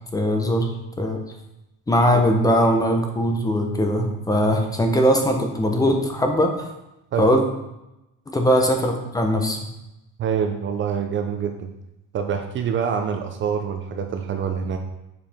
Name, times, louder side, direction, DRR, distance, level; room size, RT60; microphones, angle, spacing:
voice 1, 0.1-0.7 1.0-1.2 1.9-6.5 7.2-7.4 8.3-9.6, equal, 10° left, 3 dB, 0.7 m, -20 dB
voice 2, 10.2-11.7 12.1-14.8, right 7 dB, 35° right, 5 dB, 0.5 m, -25 dB
7.4 x 4.6 x 3.5 m, 0.93 s
cardioid pair, 150°, 33 cm